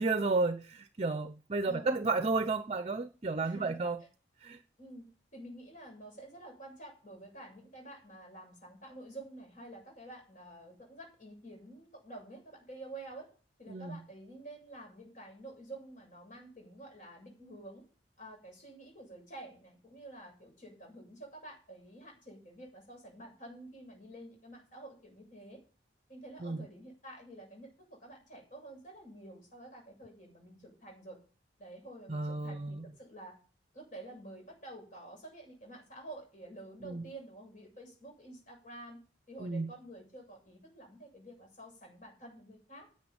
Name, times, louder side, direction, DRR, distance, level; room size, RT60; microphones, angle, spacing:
voice 1, 0.0-4.0 4.4-4.6 13.7-14.0 26.4-26.6 32.1-32.8 36.8-37.0 39.4-39.7, right 3 dB, 35° right, 0.7 m, -32 dB
voice 2, 1.6-2.0 3.4-3.8 4.8-5.1 5.3-13.3 13.6-17.8 18.2-25.6 26.1-31.2 31.6-33.4 33.7-39.0 39.3-42.9, right 1 dB, 45° left, 7.7 m, -49 dB
10.5 x 7.8 x 8.9 m
head